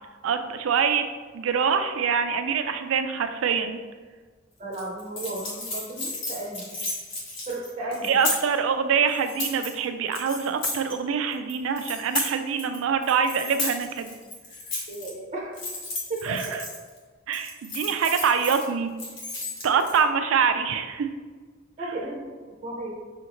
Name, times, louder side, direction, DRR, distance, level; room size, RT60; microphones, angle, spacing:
voice 1, 0.2-1.1 1.3-3.8 8.1-14.2 16.2-16.6 17.3-18.9 19.6-21.1, right 6 dB, 85° right, 9 dB, 0.4 m, -25 dB
voice 2, 4.6-6.7 7.5-8.2 14.9-15.5 16.1-16.6 21.8-22.9, right 2 dB, 35° right, -4 dB, 0.6 m, -34 dB
sound 1, 4.7-8.6 9.1-9.8 10.1-10.9 11.3-12.8 13.0-15.1 15.5-17.0 17.3-18.7 19.0-20.0, left 2 dB, 75° left, 1.1 m, -33 dB
5.6 x 2.5 x 2.9 m, 1.4 s
head